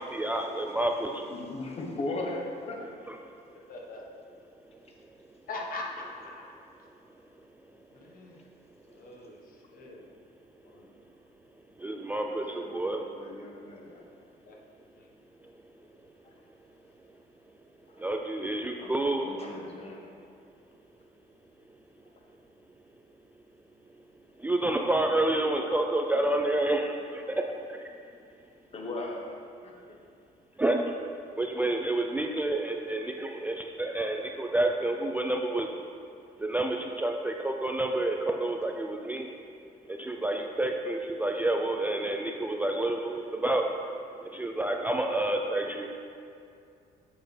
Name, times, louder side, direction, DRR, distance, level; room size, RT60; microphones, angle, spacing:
voice 1, 0.1-1.3 11.8-13.0 18.0-19.3 24.4-27.4 30.6-31.0 31.4-35.7 36.4-39.3 39.9-43.6 44.3-46.0, right 2 dB, 10° right, 2 dB, 0.4 m, -29 dB
voice 2, 1.3-2.9 12.4-14.0 16.2-16.3 17.9-18.1 18.8-20.0 22.1-22.3 25.7-25.8 26.3-26.4 28.7-30.0 31.4-31.5 32.1-32.4, left 2 dB, 35° left, 0 dB, 1.2 m, -39 dB
voice 3, 3.7-4.0 5.5-6.5 7.9-8.4 8.9-10.0 10.6-10.9 14.5-14.6 15.0-15.1, left 2 dB, 55° left, -1 dB, 1.2 m, -41 dB
7.9 x 6.4 x 3.3 m, 2.5 s
cardioid pair, 110°, 17 cm